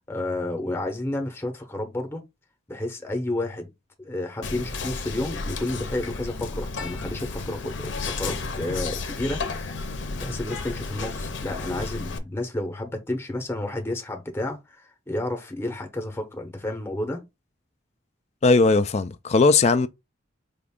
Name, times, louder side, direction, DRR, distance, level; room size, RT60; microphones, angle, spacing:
voice 1, 0.1-2.2 2.7-3.7 4.0-9.4 10.1-17.2, left 1 dB, 10° left, 0.7 m, -31 dB
Whispering, 4.4-12.2, left 3 dB, 60° left, 0.7 m, -32 dB
voice 2, 18.4-19.9, left 3 dB, 30° left, 0.3 m, -18 dB
4.9 x 2.5 x 3.5 m
head